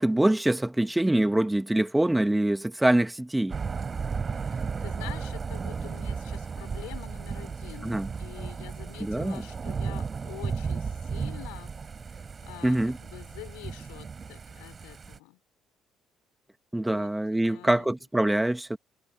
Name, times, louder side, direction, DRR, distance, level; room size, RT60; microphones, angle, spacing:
voice 1, 0.0-3.6 7.8-8.1 9.0-9.4 12.6-13.0 16.7-18.8, right 1 dB, 10° right, 2.5 m, -24 dB
Thunder / Rain, 3.5-15.2, right 5 dB, 35° right, 5.2 m, -34 dB
voice 2, 4.3-11.7 12.1-15.4 16.8-17.9, left 28 dB, 75° left, 4.3 m, -47 dB
hypercardioid pair, 50°, 0 cm